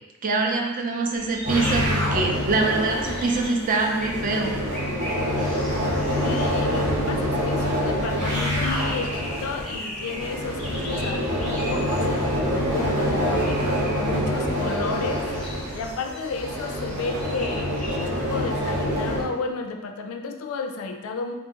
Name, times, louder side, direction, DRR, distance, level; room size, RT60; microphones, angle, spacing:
voice 1, 0.2-4.5, right 3 dB, 40° right, 1 dB, 0.4 m, -24 dB
sound 1, 1.1-18.1, left 1 dB, 5° left, 0.6 m, -39 dB
sound 2, 1.4-19.2, equal, 85° right, 1.5 m, -26 dB
voice 2, 6.1-12.1 12.7-13.7 14.0-15.3 15.7-21.3, left 4 dB, 80° left, 5 dB, 0.3 m, -32 dB
2.8 x 2.5 x 3.7 m, 1.1 s
head